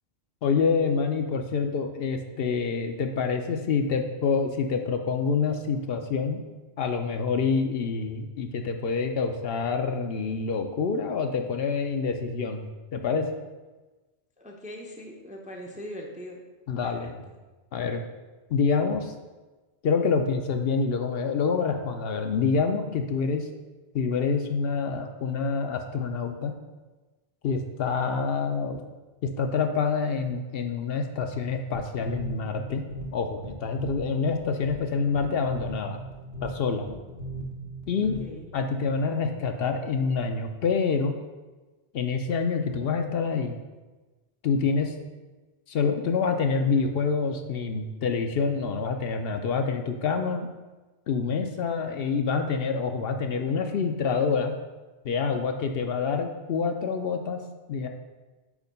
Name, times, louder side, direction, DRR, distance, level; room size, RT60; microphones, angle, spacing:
voice 1, 0.4-6.4 6.8-13.3 16.7-17.1 17.7-18.0 18.5-19.1 19.8-23.5 23.9-26.5 27.4-28.8 29.2-32.8 33.1-36.0 36.4-36.8 37.9-38.2 38.5-41.1 41.9-43.6 44.4-44.9 45.7-50.5 51.1-54.5 55.0-57.4 57.7-57.9, left 5 dB, 65° left, 5 dB, 0.7 m, -27 dB
voice 2, 14.4-16.4 16.8-17.4 38.2-38.4, equal, 10° right, 0 dB, 0.4 m, -41 dB
sound 1, 31.7-38.6, right 2 dB, 80° left, 1.3 m, -39 dB
4.9 x 4.4 x 5.2 m, 1.2 s
omnidirectional pair, 1.1 m